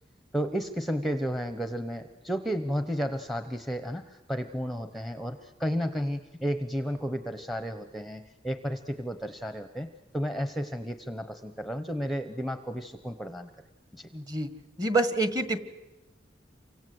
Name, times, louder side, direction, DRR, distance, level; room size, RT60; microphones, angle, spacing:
voice 1, 0.3-9.9 10.1-13.5 13.9-14.1, equal, ahead, 8 dB, 0.9 m, -32 dB
voice 2, 14.1-14.5 14.8-15.7, right 2 dB, 20° right, 10 dB, 1.6 m, -27 dB
28.5 x 25.0 x 8.0 m, 1.1 s
head